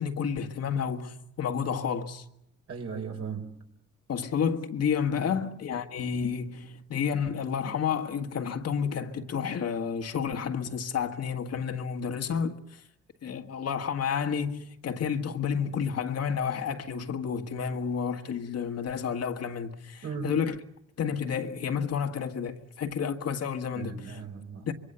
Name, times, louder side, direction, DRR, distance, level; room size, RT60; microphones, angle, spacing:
voice 1, 0.0-2.2 4.1-12.6 13.2-20.6 21.0-24.2 24.7-24.8, left 7 dB, 55° left, 1.8 m, -30 dB
voice 2, 2.7-3.4 5.3-5.4 20.0-20.3 23.7-24.7, right 5 dB, 55° right, 5.5 m, -37 dB
25.5 x 22.5 x 6.9 m
cardioid pair, 90°, 30 cm